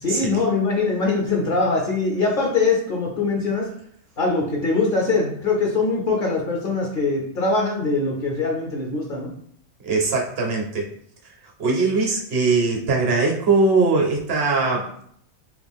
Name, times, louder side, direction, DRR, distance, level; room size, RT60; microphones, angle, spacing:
voice 1, 0.0-3.7 4.2-9.3, left 3 dB, 55° left, -1 dB, 0.7 m, -22 dB
voice 2, 9.8-10.9 11.6-15.0, right 3 dB, 60° right, 0 dB, 0.9 m, -21 dB
3.0 x 2.3 x 3.4 m, 0.65 s
omnidirectional pair, 1.2 m